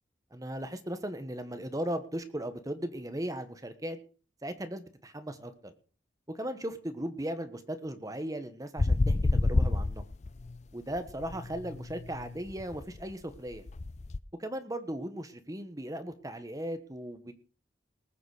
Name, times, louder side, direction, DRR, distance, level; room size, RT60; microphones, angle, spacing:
voice 1, 0.3-4.0 4.4-5.7 6.3-10.0 10.7-13.6 14.4-17.3, right 1 dB, 20° right, 9 dB, 1.3 m, -37 dB
sound 1, 8.8-10.6 10.9-14.2, left 2 dB, 40° left, 0.5 m, -29 dB
20.0 x 7.1 x 5.0 m, 0.39 s
head